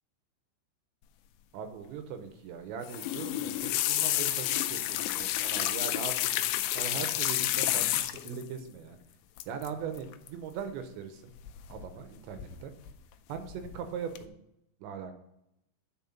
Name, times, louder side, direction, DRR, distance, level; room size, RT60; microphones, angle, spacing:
voice 1, 1.5-6.3 6.8-9.0 9.5-11.3 11.7-12.7 13.3-14.4 14.8-15.1, right 7 dB, 80° right, 7 dB, 3.0 m, -40 dB
sound 1, 2.8-8.4 9.4-9.7 10.0-10.3 11.5-12.0 12.4-12.9 13.4-13.8 14.2-14.3, left 14 dB, 85° left, 2.6 m, -30 dB
9.5 x 4.6 x 7.2 m, 0.82 s
omnidirectional pair, 5.5 m